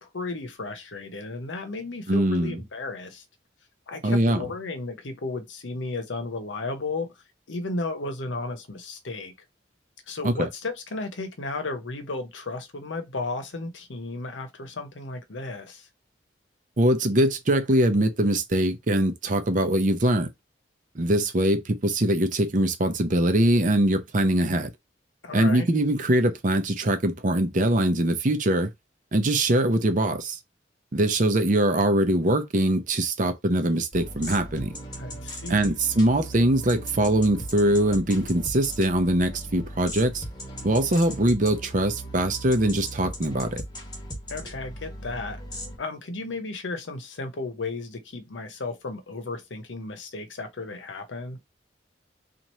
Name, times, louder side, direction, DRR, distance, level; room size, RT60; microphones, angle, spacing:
voice 1, 0.0-3.2 3.9-7.1 7.5-9.3 10.1-15.9 25.2-25.7 35.0-35.7 44.3-45.4 45.8-51.4, left 3 dB, 85° left, 0.8 m, -34 dB
voice 2, 2.1-2.6 4.0-4.4 10.2-10.5 16.8-20.3 20.9-24.7 25.3-28.7 29.1-30.4 30.9-34.7 35.5-40.2 40.6-43.6, right 1 dB, 45° right, 0.6 m, -22 dB
sound 1, 33.9-45.8, equal, 25° left, 1.2 m, -38 dB
3.0 x 2.5 x 4.2 m
head